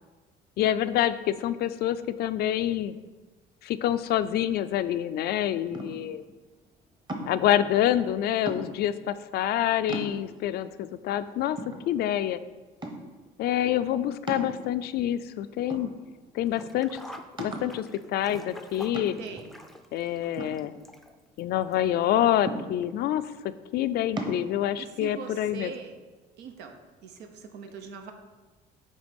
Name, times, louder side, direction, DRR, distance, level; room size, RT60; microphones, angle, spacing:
voice 1, 0.6-2.9 3.6-6.2 7.3-11.6 11.9-12.4 13.4-15.9 16.3-17.0 17.4-19.1 19.9-20.7 21.4-23.2 23.7-25.7, left 11 dB, 70° left, 13 dB, 0.4 m, -27 dB
sound 1, 5.7-6.2 7.1-7.5 8.5-9.0 9.5-9.6 9.9-10.5 11.1-11.2 11.6-12.3 12.8-13.2 14.3-15.0 15.7-16.3 16.7-16.8 17.4-17.8 18.9-19.4 20.4-21.3 22.5-23.1 24.2-24.4, right 1 dB, 25° right, 1.1 m, -37 dB
Sink (filling or washing), 16.5-21.4 21.7-21.8 22.8-22.9 23.2-23.3, equal, ahead, 0.5 m, -46 dB
voice 2, 19.2-19.5 24.8-25.9 26.4-26.7 27.0-28.1, right 6 dB, 85° right, 5 dB, 1.0 m, -41 dB
9.0 x 3.3 x 5.3 m, 1.3 s
cardioid pair, 110°, 17 cm